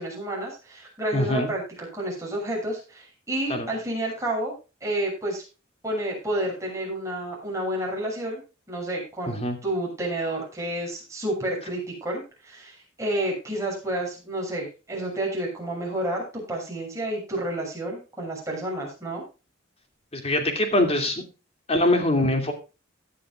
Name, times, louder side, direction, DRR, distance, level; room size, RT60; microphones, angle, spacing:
voice 1, 0.0-4.5 4.8-5.4 5.8-8.4 8.7-19.2, right 1 dB, 15° right, -2 dB, 6.6 m, -30 dB
voice 2, 1.1-1.5 3.5-3.7 9.3-9.6 20.1-21.2 21.7-22.5, left 1 dB, 30° left, 5 dB, 2.6 m, -23 dB
17.0 x 10.0 x 2.4 m, 0.31 s
head